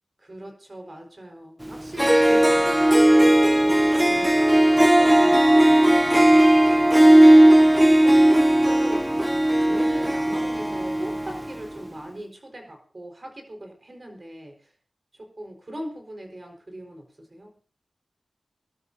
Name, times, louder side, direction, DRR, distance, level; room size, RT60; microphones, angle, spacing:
voice 1, 0.2-4.3 4.6-5.9 6.7-8.3 8.6-9.1 9.6-14.7 15.1-17.5, equal, 45° right, 4 dB, 4.6 m, -39 dB
Harp, 1.7-1.8 2.0-11.5, right 1 dB, 10° right, 0.6 m, -16 dB
23.0 x 12.5 x 2.7 m, 0.41 s
cardioid pair, 40°, 0 cm